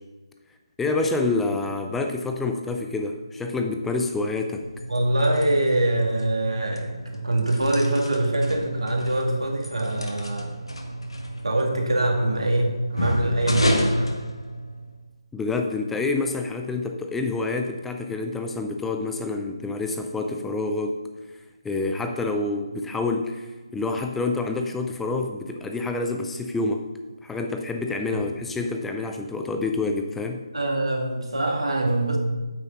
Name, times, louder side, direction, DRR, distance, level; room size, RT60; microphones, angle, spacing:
voice 1, 0.8-4.7 15.3-21.0 21.6-23.5 23.7-26.9 27.2-30.4, left 3 dB, 5° left, 4 dB, 0.4 m, -27 dB
sound 1, 4.5-15.0, equal, 70° left, 1.6 m, -31 dB
voice 2, 4.9-10.5 11.4-14.2 28.1-28.2 30.5-32.2, right 1 dB, 70° right, 0 dB, 2.2 m, -24 dB
9.0 x 8.7 x 3.9 m, 1.2 s
figure-of-eight pair, 155°, 3 cm